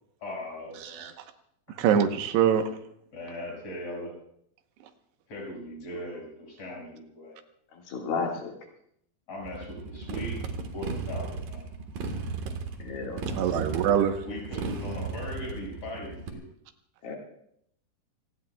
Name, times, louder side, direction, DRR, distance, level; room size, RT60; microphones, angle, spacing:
voice 1, 0.2-1.1 1.7-1.8 3.1-4.1 5.3-7.3 9.3-10.4 10.7-11.7 14.1-16.4, left 1 dB, 40° left, -1 dB, 6.7 m, -39 dB
voice 2, 1.8-2.7 13.4-14.2, right 8 dB, 85° right, 7 dB, 3.2 m, -24 dB
voice 3, 7.7-8.5 12.8-13.7 17.0-17.1, left 4 dB, 65° left, 0 dB, 3.6 m, -34 dB
Motorcycle, 9.4-16.3, right 4 dB, 65° right, 2.9 m, -35 dB
26.0 x 18.0 x 2.3 m, 0.70 s
omnidirectional pair, 4.7 m